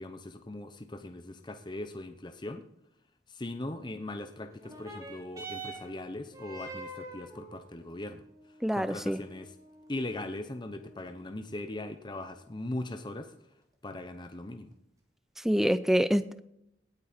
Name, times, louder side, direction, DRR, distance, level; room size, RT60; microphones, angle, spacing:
voice 1, 0.0-2.6 3.3-8.2 8.7-9.5 9.9-13.3 13.8-14.7, left 1 dB, 25° left, 8 dB, 0.9 m, -39 dB
sound 1, 4.5-13.5 14.4-14.5, right 2 dB, 20° right, 2.7 m, -47 dB
voice 2, 8.6-9.2 15.4-16.4, equal, ahead, 14 dB, 0.5 m, -26 dB
17.5 x 8.8 x 4.4 m, 0.79 s
head